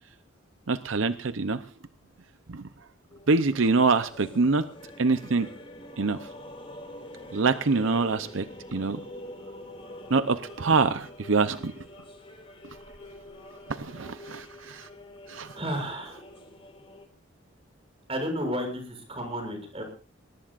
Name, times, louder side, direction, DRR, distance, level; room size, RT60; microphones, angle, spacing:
voice 1, 0.7-1.6 2.5-2.6 3.3-4.6 5.0-5.5 6.0-6.2 7.3-8.5 8.7-9.0 10.1-11.7 13.7-14.9 15.3-15.5, right 4 dB, 80° right, 11 dB, 0.7 m, -25 dB
sound 1, 3.1-17.1, left 1 dB, 30° left, 3.7 m, -46 dB
voice 2, 15.5-16.2 18.1-19.8, equal, 30° right, 4 dB, 7.0 m, -32 dB
22.5 x 19.5 x 2.5 m, 0.37 s
head